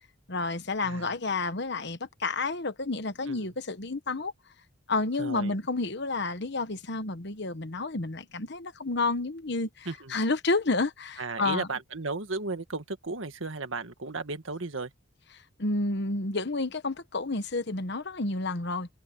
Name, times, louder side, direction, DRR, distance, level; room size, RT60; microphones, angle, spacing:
voice 1, 0.3-4.3 4.9-11.7 15.6-18.9, left 3 dB, 60° left, 1.3 m, -30 dB
voice 2, 0.8-1.1 3.3-3.5 5.2-5.5 9.9-10.2 11.2-14.9, right 3 dB, 80° right, 1.8 m, -35 dB
head